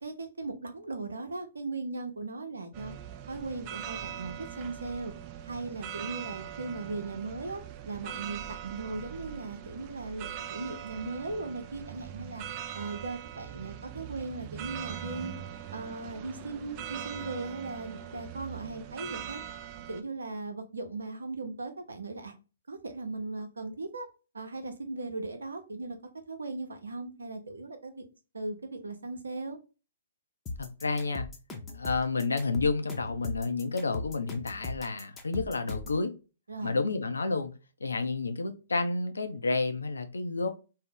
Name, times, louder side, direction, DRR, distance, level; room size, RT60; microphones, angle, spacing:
voice 1, 0.0-2.9 3.3-5.1 5.4-12.4 12.7-15.3 15.7-19.4 19.9-22.3 22.7-24.1 24.3-26.0 26.3-28.0 28.3-29.6 36.5-36.7, right 3 dB, 85° right, 0.7 m, -38 dB
sound 1, 2.7-20.0, right 10 dB, 35° right, 0.3 m, -41 dB
sound 2, 30.5-36.0, left 3 dB, 15° left, 0.7 m, -39 dB
voice 2, 30.6-31.3 31.7-36.1 36.6-37.5 37.8-40.5, left 3 dB, 85° left, 0.5 m, -30 dB
2.7 x 2.1 x 3.6 m
hypercardioid pair, 125°, 0 cm